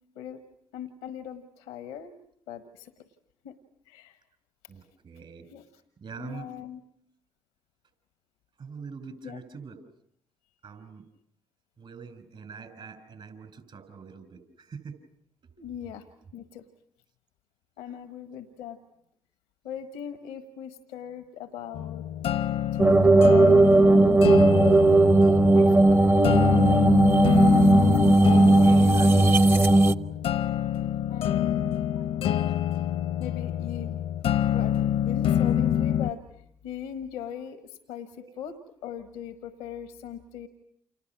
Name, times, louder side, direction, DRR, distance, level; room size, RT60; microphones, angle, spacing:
voice 1, 0.7-2.1 2.5-2.9 3.4-3.6 3.9-4.2 5.5-5.7 6.2-6.8 9.2-9.4 15.6-16.1 16.3-16.6 17.8-18.8 19.6-22.1 22.7-24.8 25.5-26.9 28.2-29.3 31.1-31.7 33.2-34.0 34.5-34.8 35.0-36.2 36.6-40.5, left 9 dB, 85° left, 10 dB, 1.3 m, -39 dB
voice 2, 4.7-5.5 6.0-6.5 8.6-9.8 10.6-11.0 11.8-15.0 15.4-15.5 18.7-18.8 28.6-29.3 32.0-32.1 38.2-38.3, right 5 dB, 60° right, 10 dB, 5.9 m, -43 dB
sound 1, 21.7-36.1, left 10 dB, 70° left, 1.0 m, -27 dB
sound 2, 22.8-29.9, right 2 dB, 25° right, 1.1 m, -17 dB
30.0 x 28.0 x 6.0 m, 0.69 s
hypercardioid pair, 45°, 10 cm